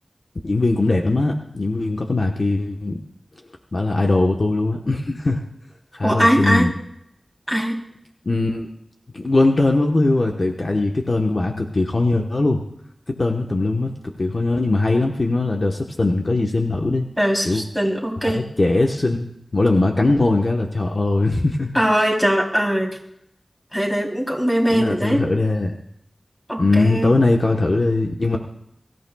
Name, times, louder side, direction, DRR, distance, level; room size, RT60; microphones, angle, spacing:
voice 1, 0.4-3.0 3.7-5.4 5.9-6.7 8.2-8.7 9.1-12.6 13.1-13.9 14.2-17.1 17.4-17.6 18.2-21.7 24.7-25.7 26.6-28.4, left 2 dB, 60° left, 2 dB, 1.2 m, -20 dB
voice 2, 6.0-6.7 7.5-7.8 17.2-18.4 21.7-23.0 23.7-25.3 26.5-27.2, equal, 10° left, -1 dB, 3.4 m, -20 dB
23.5 x 14.0 x 2.4 m, 0.75 s
wide cardioid pair, 60°, 0 cm